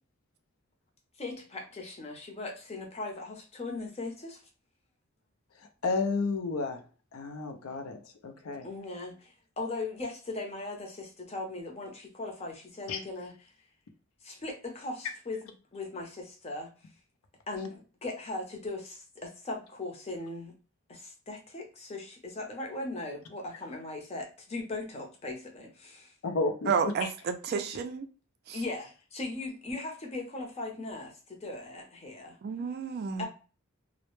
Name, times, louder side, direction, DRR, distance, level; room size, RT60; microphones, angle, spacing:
voice 1, 1.2-4.4 8.6-13.3 14.2-16.7 17.5-20.5 20.9-26.1 28.5-32.4 33.2-33.3, left 2 dB, 30° left, 1 dB, 0.6 m, -39 dB
voice 2, 5.8-6.8 7.1-8.7 12.9-13.0 26.2-26.9, left 3 dB, 80° left, 6 dB, 0.5 m, -31 dB
voice 3, 26.7-28.1 28.5-28.6 32.4-33.3, right 6 dB, 50° right, 6 dB, 0.3 m, -31 dB
2.1 x 2.0 x 3.0 m, 0.35 s
head